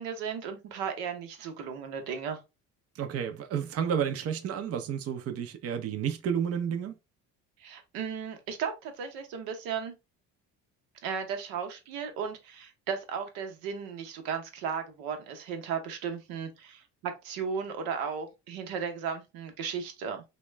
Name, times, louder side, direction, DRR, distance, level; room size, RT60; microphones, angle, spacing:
voice 1, 0.0-2.4 7.6-9.9 11.0-20.2, right 6 dB, 80° right, 0.8 m, -35 dB
voice 2, 2.9-7.0, right 8 dB, 45° right, 0.6 m, -31 dB
2.9 x 2.2 x 3.2 m
supercardioid pair, 70°, 34 cm